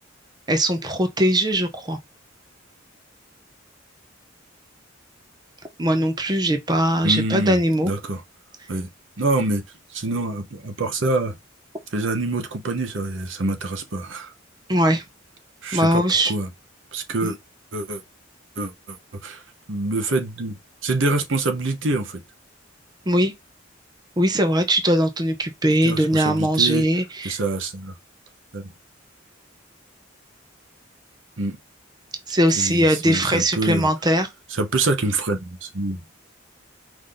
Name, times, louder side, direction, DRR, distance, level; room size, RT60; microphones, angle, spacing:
voice 1, 0.5-2.0 5.8-7.9 14.7-15.0 15.7-16.3 17.2-17.3 23.1-23.3 24.2-27.4 32.3-34.3, right 1 dB, 20° right, 0.6 m, -20 dB
voice 2, 7.0-7.6 7.8-8.2 8.7-8.9 9.2-9.6 9.9-11.4 11.9-14.3 15.6-16.5 16.9-17.4 17.7-18.0 18.6-19.0 19.2-19.4 19.7-22.2 25.8-26.8 27.2-27.9 28.5-28.6 31.4-31.6 32.6-33.9 34.6-36.0, right 2 dB, 70° right, 0.9 m, -25 dB
5.0 x 2.7 x 3.8 m
head